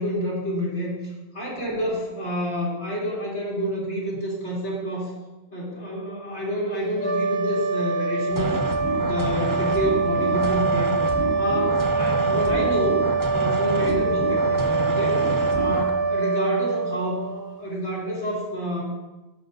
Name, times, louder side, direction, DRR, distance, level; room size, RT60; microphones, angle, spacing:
voice 1, 0.0-5.1 5.5-8.6 9.0-10.9 11.4-13.0 13.3-15.3 15.5-18.8, equal, 55° left, -5 dB, 2.5 m, -28 dB
sound 1, 6.9-17.6, right 3 dB, 15° left, 2.0 m, -24 dB
sound 2, 8.3-15.9, right 2 dB, 30° right, 0.4 m, -29 dB
12.0 x 5.1 x 2.7 m, 1.1 s
omnidirectional pair, 1.3 m